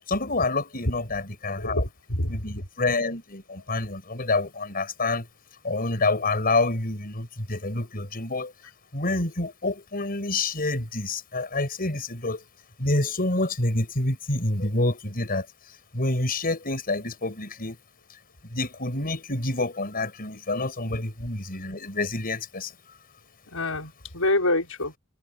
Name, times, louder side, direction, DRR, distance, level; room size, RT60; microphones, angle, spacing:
voice 1, 0.1-1.8 2.3-5.3 5.6-8.5 8.9-12.4 12.8-15.5 15.9-17.8 18.5-22.7, left 2 dB, 45° left, 6.8 m, -27 dB
voice 2, 1.6-2.6 3.7-3.8 23.5-24.9, left 2 dB, 90° left, 6.1 m, -27 dB
head